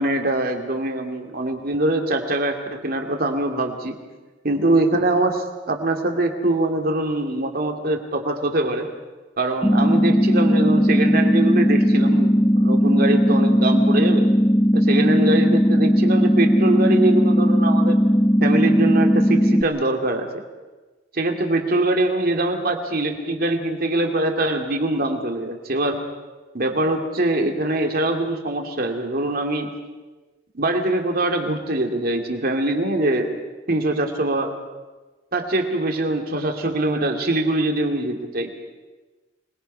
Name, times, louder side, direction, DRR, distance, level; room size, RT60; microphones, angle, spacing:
voice 1, 0.0-3.9 4.4-8.9 9.4-14.3 14.7-18.0 18.4-20.3 21.1-26.0 26.5-29.7 30.5-33.3 33.7-34.5 35.3-38.5, right 2 dB, 50° right, 4 dB, 2.5 m, -23 dB
sound 1, 9.6-19.6, equal, 10° left, 0.7 m, -17 dB
25.5 x 21.0 x 5.6 m, 1.2 s
head